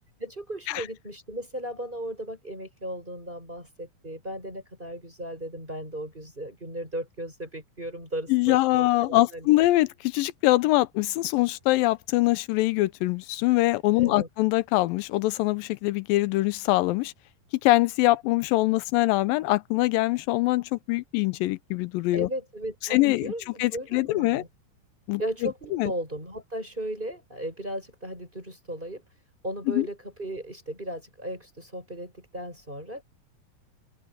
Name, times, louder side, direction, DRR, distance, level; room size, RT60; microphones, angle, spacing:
voice 1, 0.2-9.5 14.0-14.3 22.1-24.5 25.2-29.0 29.4-33.0, right 1 dB, 15° right, 7.2 m, -36 dB
voice 2, 8.3-17.1 17.6-22.3 22.9-23.3 23.6-24.4 25.1-25.9 29.7-29.9, left 18 dB, 85° left, 2.4 m, -23 dB
open air
omnidirectional pair, 4.0 m